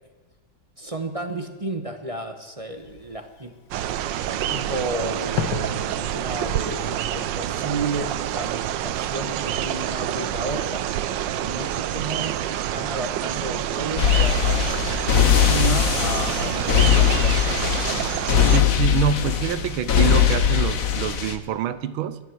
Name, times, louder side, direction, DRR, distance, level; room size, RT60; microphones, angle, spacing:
voice 1, 0.8-3.5 3.9-11.0 11.4-12.4 12.7-17.6, right 2 dB, 25° right, 6 dB, 0.7 m, -32 dB
Fireworks, 2.7-8.4, left 6 dB, 75° left, 1.9 m, -37 dB
sound 1, 3.7-18.6, right 11 dB, 70° right, 1.3 m, -27 dB
sound 2, 14.0-21.3, left 9 dB, 50° left, 1.3 m, -20 dB
voice 2, 18.5-22.2, right 9 dB, 90° right, 14 dB, 1.7 m, -26 dB
24.5 x 9.5 x 4.7 m, 1.4 s
omnidirectional pair, 2.2 m